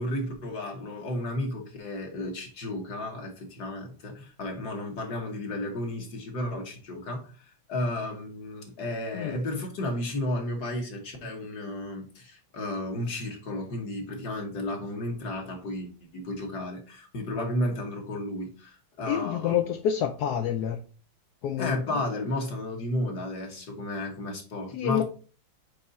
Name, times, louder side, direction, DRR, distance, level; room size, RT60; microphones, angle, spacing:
voice 1, 0.0-19.6 21.6-25.0, left 1 dB, 55° left, 1.8 m, -33 dB
voice 2, 19.1-20.8 21.4-21.8 24.7-25.0, left 9 dB, 85° left, 0.8 m, -27 dB
5.4 x 4.7 x 4.0 m
omnidirectional pair, 2.3 m